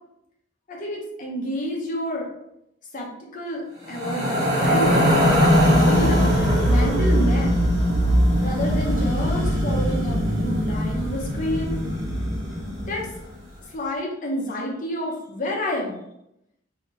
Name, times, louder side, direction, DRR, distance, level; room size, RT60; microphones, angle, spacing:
voice 1, 0.7-2.3 2.9-7.6 8.4-11.8 12.9-13.1 13.7-16.0, equal, 45° left, -2 dB, 0.8 m, -29 dB
sound 1, 3.9-13.2, equal, 40° right, 1.1 m, -21 dB
2.8 x 2.8 x 3.3 m, 0.83 s
head